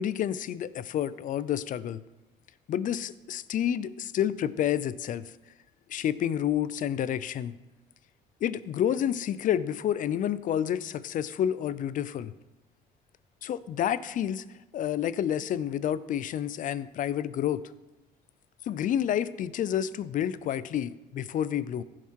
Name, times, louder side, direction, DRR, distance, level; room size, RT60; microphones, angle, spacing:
voice 1, 0.0-2.0 2.7-5.3 5.9-7.5 8.4-12.3 13.4-14.4 14.7-17.6 18.7-21.8, left 10 dB, 50° left, 17 dB, 0.5 m, -29 dB
15.5 x 5.8 x 4.6 m, 1.1 s
cardioid pair, 110°, 17 cm